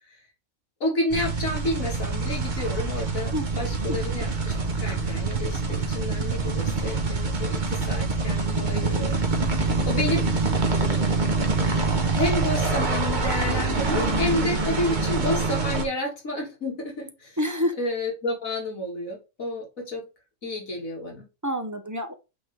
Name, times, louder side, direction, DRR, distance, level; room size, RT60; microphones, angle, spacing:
voice 1, 0.8-9.2 9.9-10.3 12.1-17.4 17.8-20.1 20.4-21.2, left 1 dB, 90° left, -1 dB, 3.1 m, -30 dB
sound 1, 1.1-15.9, right 3 dB, 35° right, 1.3 m, -25 dB
voice 2, 3.3-4.0 9.7-9.8 10.8-10.9 17.4-17.7 21.4-22.1, equal, 15° right, 7 dB, 0.7 m, -29 dB
8.6 x 3.8 x 3.5 m, 0.27 s
omnidirectional pair, 1.4 m